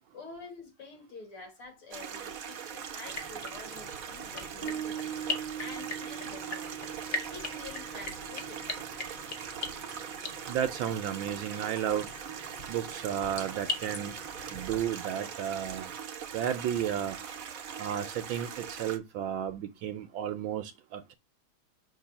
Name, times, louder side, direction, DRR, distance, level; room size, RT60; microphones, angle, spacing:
voice 1, 0.1-7.0 7.3-8.8, left 3 dB, 90° left, 3.2 m, -48 dB
Stream, 1.9-19.0, right 7 dB, 55° right, 1.0 m, -41 dB
sound 1, 3.0-14.8, left 3 dB, 45° left, 0.8 m, -41 dB
Bass guitar, 4.6-11.8, right 9 dB, 10° left, 1.2 m, -43 dB
voice 2, 10.5-12.1 12.7-14.1 14.5-15.9 16.3-17.2 17.8-21.1, right 9 dB, 75° right, 1.3 m, -33 dB
6.0 x 3.2 x 5.8 m
omnidirectional pair, 2.3 m